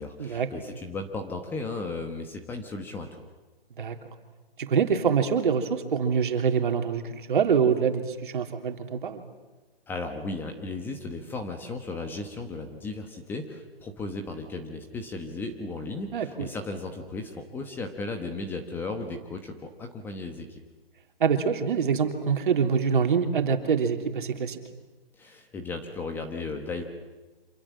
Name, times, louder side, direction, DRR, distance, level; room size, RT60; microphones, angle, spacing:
voice 1, 0.0-3.1 9.9-20.6 25.2-26.8, left 3 dB, 5° left, 5 dB, 1.1 m, -35 dB
voice 2, 4.6-9.2 16.1-16.5 21.2-24.6, right 6 dB, 55° right, 5 dB, 3.2 m, -25 dB
28.0 x 26.5 x 7.4 m, 1.2 s
hypercardioid pair, 160°, 30 cm